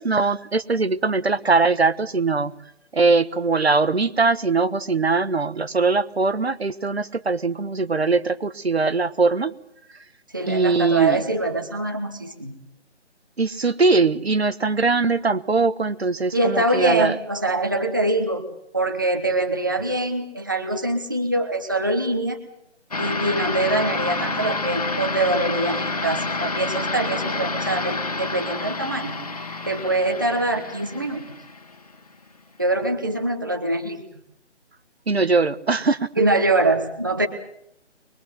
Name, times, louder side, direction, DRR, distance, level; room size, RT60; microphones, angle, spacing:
voice 1, 0.0-2.5 2.9-9.5 10.5-11.2 13.4-17.2 35.1-36.1, right 4 dB, 60° right, 13 dB, 1.3 m, -21 dB
voice 2, 10.3-12.5 16.3-18.4 18.7-22.4 23.0-29.2 29.7-31.2 32.6-34.0 36.2-37.3, right 2 dB, 15° right, 5 dB, 1.1 m, -24 dB
sound 1, 22.9-32.0, left 3 dB, 35° left, 1.7 m, -28 dB
24.0 x 21.5 x 7.7 m, 0.74 s
figure-of-eight pair, 180°, 35 cm